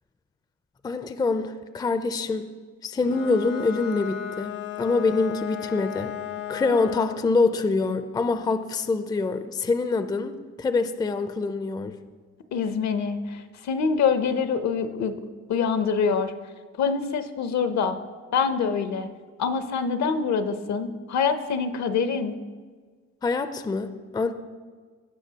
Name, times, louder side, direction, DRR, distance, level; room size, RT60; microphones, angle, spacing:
voice 1, 0.8-2.5 2.8-6.1 6.5-10.3 10.6-12.0 23.2-24.3, left 3 dB, 15° left, 10 dB, 0.4 m, -25 dB
Bowed string instrument, 3.0-7.3, left 11 dB, 90° left, 1.0 m, -35 dB
voice 2, 12.5-15.2 15.5-16.3 16.8-18.0 18.3-19.1 19.4-22.4, left 6 dB, 65° left, 10 dB, 0.7 m, -25 dB
16.0 x 5.6 x 2.8 m, 1.5 s
cardioid pair, 90°, 30 cm